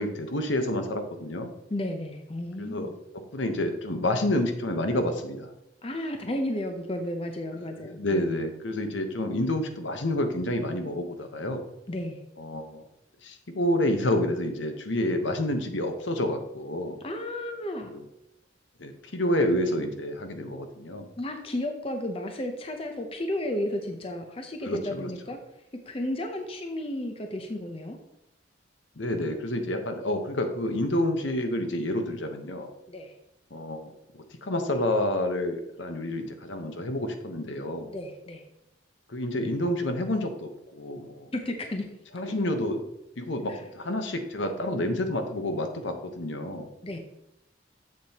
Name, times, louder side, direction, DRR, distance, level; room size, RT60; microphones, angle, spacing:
voice 1, 0.0-1.5 2.6-2.9 3.3-5.5 7.6-11.6 12.4-12.8 13.2-17.0 17.9-18.0 18.8-21.1 24.6-25.1 29.0-32.7 33.5-37.9 39.1-41.3 42.1-42.8 43.2-46.7, left 1 dB, 75° left, 6 dB, 1.0 m, -29 dB
voice 2, 1.7-2.9 5.8-8.2 11.9-12.2 17.0-17.9 21.2-25.4 25.9-28.0 32.9-33.1 37.9-38.5 41.3-41.9 43.5-43.6 46.8-47.0, left 1 dB, 30° left, 4 dB, 0.6 m, -33 dB
7.7 x 7.3 x 2.9 m, 0.86 s
head